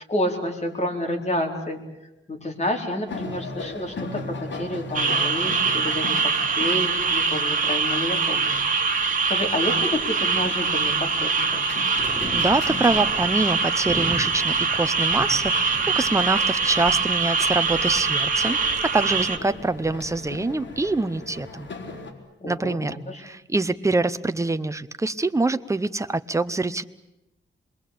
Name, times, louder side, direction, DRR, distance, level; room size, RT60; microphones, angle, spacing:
voice 1, 0.0-1.8 2.3-9.0 9.3-11.7 22.4-23.2, left 1 dB, 35° left, 2 dB, 4.3 m, -29 dB
sound 1, 3.1-22.1, left 3 dB, 65° left, 4.0 m, -39 dB
sound 2, 4.9-19.4, right 4 dB, 40° right, 2.4 m, -23 dB
sound 3, 9.9-20.8, left 1 dB, 15° left, 6.3 m, -41 dB
voice 2, 12.3-21.7 22.5-26.8, right 2 dB, 15° right, 11 dB, 0.8 m, -25 dB
27.5 x 21.5 x 8.6 m, 0.93 s
wide cardioid pair, 110°, 20 cm